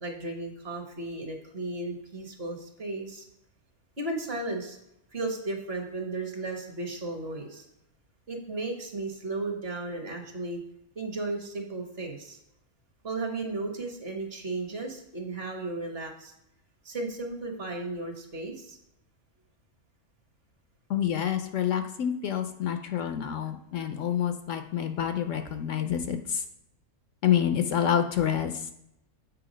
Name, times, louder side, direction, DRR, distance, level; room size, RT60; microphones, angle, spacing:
voice 1, 0.0-3.3 4.0-4.8 5.1-7.7 8.3-10.6 10.9-12.4 13.0-16.3 16.8-18.8, right 2 dB, 45° right, 3 dB, 1.3 m, -35 dB
voice 2, 20.9-26.4 27.2-28.7, left 9 dB, 70° left, 8 dB, 0.9 m, -28 dB
7.7 x 4.4 x 5.0 m, 0.81 s
omnidirectional pair, 1.5 m